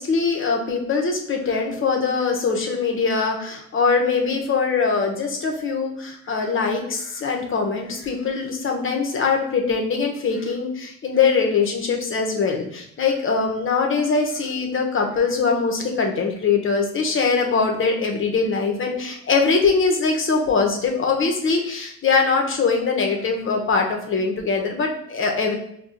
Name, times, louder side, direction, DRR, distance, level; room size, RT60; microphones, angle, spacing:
voice 1, 0.0-25.5, left 4 dB, 45° left, 2 dB, 0.9 m, -22 dB
5.3 x 2.3 x 2.5 m, 0.73 s
cardioid pair, 90°, 30 cm